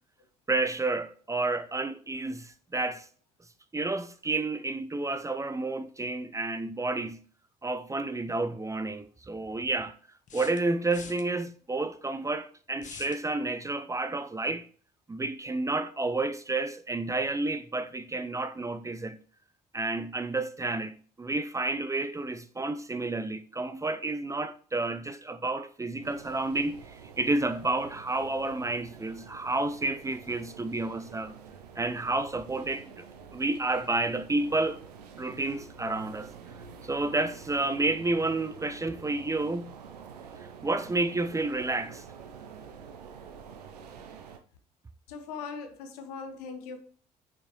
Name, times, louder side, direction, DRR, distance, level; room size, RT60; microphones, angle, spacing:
voice 1, 0.5-3.1 3.7-7.2 7.6-9.9 10.3-14.7 15.1-19.2 19.7-31.3 31.8-33.1 33.3-34.8 35.2-36.3 36.8-39.7 40.4-42.0, right 2 dB, 15° right, 0.6 m, -30 dB
sound 1, 10.3-11.2 12.8-13.2, left 6 dB, 35° left, 1.0 m, -45 dB
sound 2, 26.0-44.4, right 6 dB, 75° right, 0.7 m, -48 dB
voice 2, 45.1-46.8, left 5 dB, 70° left, 1.0 m, -40 dB
6.4 x 5.7 x 3.0 m
figure-of-eight pair, 50°, 21 cm